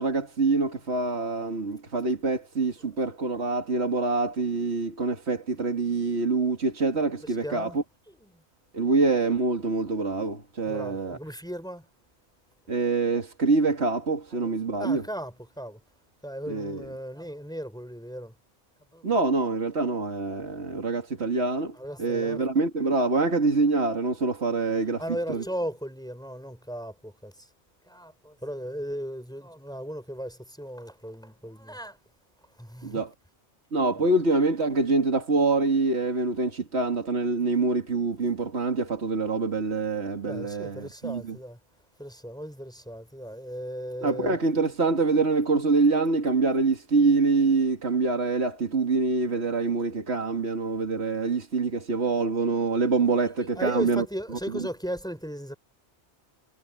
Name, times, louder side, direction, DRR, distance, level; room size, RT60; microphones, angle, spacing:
voice 1, 0.0-7.7 8.7-11.2 12.7-15.0 16.5-16.8 19.0-25.0 25.3-25.4 32.8-33.1 33.7-41.2 44.0-54.0, right 3 dB, 70° right, 2.4 m, -25 dB
voice 2, 7.2-7.8 8.1-8.4 10.7-11.9 14.3-15.8 16.2-18.3 18.9-19.1 21.7-22.5 25.0-27.5 27.8-32.0 32.6-33.1 34.0-34.1 40.3-41.6 42.0-44.4 53.1-55.5, equal, 5° left, 4.7 m, -37 dB
omnidirectional pair, 1.2 m